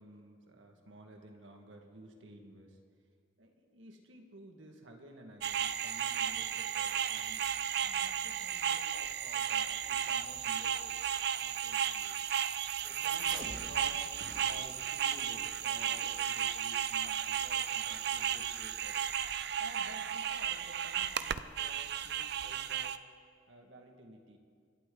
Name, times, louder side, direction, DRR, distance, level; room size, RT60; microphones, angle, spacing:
voice 1, 0.0-2.8 3.4-11.0 11.4-12.1 12.8-19.0 19.6-22.9 23.5-24.4, right 1 dB, 75° right, 3 dB, 1.8 m, -53 dB
sound 1, 5.4-23.0, right 9 dB, 55° right, 0.5 m, -34 dB
sound 2, 13.2-19.3, right 1 dB, 40° right, 2.9 m, -52 dB
26.5 x 12.0 x 3.9 m, 2.2 s
head